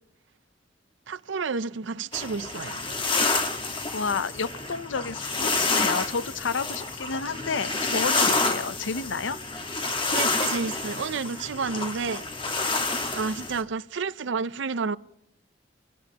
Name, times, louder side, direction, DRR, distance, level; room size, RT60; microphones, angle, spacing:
voice 1, 1.1-2.9 10.0-12.2 13.1-15.0, right 5 dB, 80° right, 0.6 m, -30 dB
sound 1, 2.1-13.6, left 3 dB, 25° left, 1.4 m, -28 dB
voice 2, 3.9-9.4, left 5 dB, 85° left, 0.7 m, -30 dB
27.0 x 16.0 x 2.9 m
head